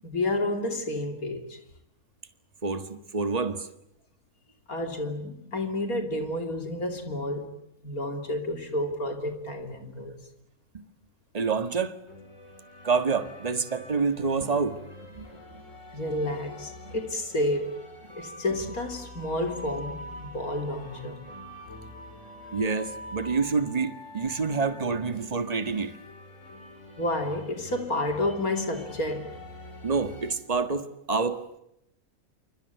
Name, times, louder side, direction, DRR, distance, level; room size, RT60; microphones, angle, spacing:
voice 1, 0.0-1.6 4.7-7.5 7.8-10.1 15.9-17.8 18.2-21.2 27.0-29.3, left 1 dB, 85° left, 3.4 m, -30 dB
voice 2, 2.6-3.7 10.7-10.8 11.3-11.9 12.8-14.8 15.1-15.4 22.5-26.0 29.8-31.4, right 4 dB, 25° right, 1.7 m, -27 dB
sound 1, 12.1-30.4, left 1 dB, 60° left, 5.4 m, -45 dB
28.5 x 25.0 x 8.2 m
omnidirectional pair, 1.5 m